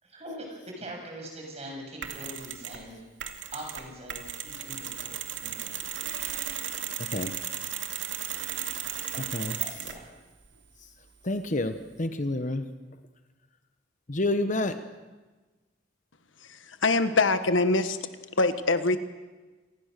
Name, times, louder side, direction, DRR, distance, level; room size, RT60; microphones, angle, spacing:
voice 1, 0.0-3.0 3.5-5.8 8.9-10.1, equal, 35° right, 1 dB, 7.3 m, -43 dB
Mechanisms, 2.0-2.8 3.2-10.1, right 9 dB, 75° right, 2.4 m, -35 dB
voice 2, 7.0-7.3 9.3-9.6 11.2-12.7 14.1-14.8, left 2 dB, 40° left, 9 dB, 1.1 m, -29 dB
voice 3, 16.4-18.0 18.4-19.0, left 3 dB, 85° left, 10 dB, 1.4 m, -24 dB
27.5 x 19.5 x 6.8 m, 1.2 s
head